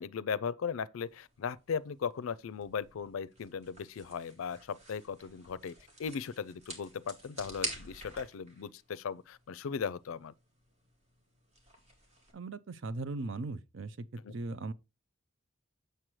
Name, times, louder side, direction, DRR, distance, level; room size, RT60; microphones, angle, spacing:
voice 1, 0.0-5.7 6.0-10.3 14.2-14.3, left 6 dB, 85° left, 0.4 m, -37 dB
sound 1, 1.0-12.3, right 1 dB, 30° right, 2.0 m, -48 dB
voice 2, 12.3-14.7, right 2 dB, 65° right, 0.5 m, -39 dB
7.5 x 6.7 x 3.1 m
head